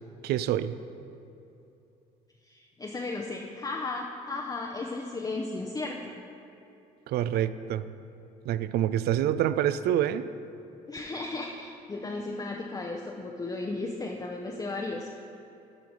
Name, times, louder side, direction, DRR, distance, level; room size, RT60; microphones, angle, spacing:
voice 1, 0.2-0.8 7.1-7.8 8.4-10.3, right 11 dB, 50° right, 14 dB, 0.4 m, -26 dB
voice 2, 2.5-6.2 10.9-15.1, left 3 dB, 20° left, 1 dB, 0.7 m, -35 dB
12.0 x 5.7 x 3.9 m, 2.8 s
figure-of-eight pair, 50°, 21 cm